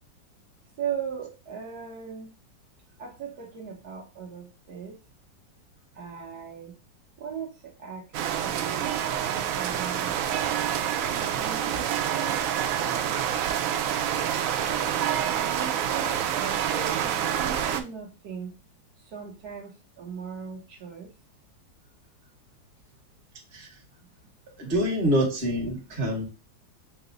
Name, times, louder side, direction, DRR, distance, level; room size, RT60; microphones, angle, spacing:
voice 1, 0.8-2.3 3.0-5.0 5.9-6.7 7.2-8.8 9.5-10.2 11.1-12.5 15.2-18.6 19.0-21.1, right 7 dB, 60° right, -2 dB, 1.3 m, -38 dB
sound 1, 8.1-17.8, right 9 dB, 85° right, 0.7 m, -27 dB
voice 2, 24.6-26.3, equal, 30° right, -1 dB, 1.4 m, -26 dB
5.8 x 2.1 x 3.8 m, 0.30 s
omnidirectional pair, 2.0 m